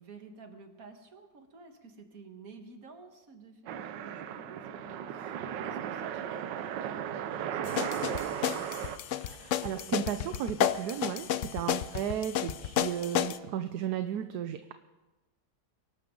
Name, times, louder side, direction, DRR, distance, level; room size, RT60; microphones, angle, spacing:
voice 1, 0.0-8.2 11.3-11.6, right 4 dB, 55° right, 5 dB, 1.9 m, -51 dB
sound 1, 3.7-9.0, right 9 dB, 90° right, 1.4 m, -36 dB
sound 2, 7.6-13.4, left 11 dB, 70° left, 0.7 m, -31 dB
voice 2, 9.2-14.7, right 9 dB, 70° right, 9 dB, 1.2 m, -34 dB
23.5 x 12.0 x 3.8 m, 1.1 s
omnidirectional pair, 1.9 m